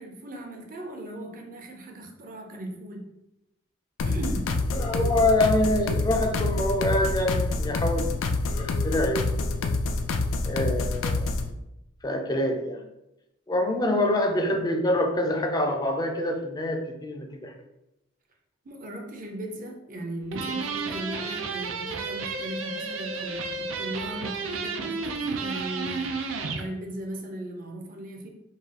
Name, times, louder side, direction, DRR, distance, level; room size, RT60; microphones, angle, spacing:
voice 1, 0.0-3.1 4.0-4.6 18.6-28.3, right 1 dB, 45° right, 2 dB, 0.6 m, -38 dB
sound 1, 4.0-11.5, left 3 dB, 90° left, 0.4 m, -27 dB
voice 2, 4.7-8.2 8.6-9.5 10.4-11.3 12.0-12.9 13.5-17.5, left 1 dB, 20° left, 3 dB, 0.4 m, -26 dB
sound 2, 20.3-26.7, right 4 dB, 90° right, 0.4 m, -32 dB
4.7 x 2.3 x 2.8 m, 0.89 s
head